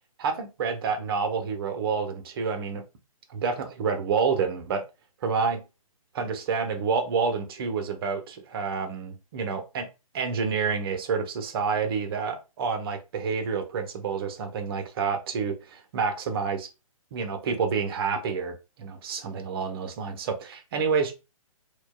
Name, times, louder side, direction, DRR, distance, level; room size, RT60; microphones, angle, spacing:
voice 1, 0.2-2.8 3.3-4.8 5.2-5.6 6.1-9.9 10.1-16.7 17.1-21.1, right 5 dB, 40° right, 0.7 m, -28 dB
4.4 x 2.3 x 2.2 m
hypercardioid pair, 135°, 18 cm